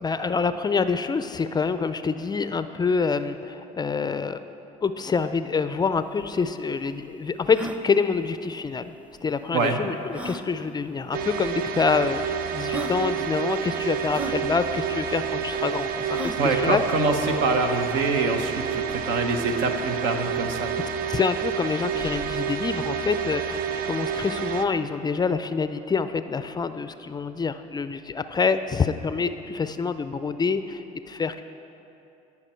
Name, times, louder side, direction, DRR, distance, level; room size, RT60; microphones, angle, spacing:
voice 1, 0.0-4.4 4.8-7.6 7.8-8.9 9.2-16.8 21.1-31.4, left 5 dB, 20° left, 11 dB, 0.4 m, -26 dB
sound 1, 5.9-6.0 6.2-6.3 6.8-6.9 7.4-7.8 9.1-9.2 10.1-10.5 11.4-11.5 12.3-12.4 12.7-13.0 14.1-14.4 16.1-16.5, right 1 dB, 5° right, 0.7 m, -33 dB
sound 2, 11.1-24.7, right 7 dB, 50° right, 0.6 m, -29 dB
voice 2, 16.4-20.7, right 3 dB, 75° right, 4 dB, 1.1 m, -25 dB
17.0 x 5.9 x 4.4 m, 2.8 s
supercardioid pair, 80°, 19 cm